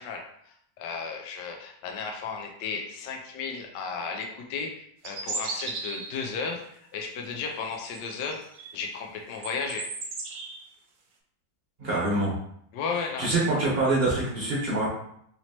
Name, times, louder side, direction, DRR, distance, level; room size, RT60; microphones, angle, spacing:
voice 1, 0.0-8.4 8.7-9.9 12.7-13.3, left 5 dB, 70° left, 2 dB, 1.1 m, -34 dB
sound 1, 5.0-6.3 7.7-8.9 9.2-10.7, right 3 dB, 65° right, 1.1 m, -36 dB
voice 2, 11.8-12.3 13.2-14.9, right 2 dB, 35° right, -5 dB, 1.1 m, -25 dB
4.2 x 2.9 x 2.9 m, 0.70 s
omnidirectional pair, 2.2 m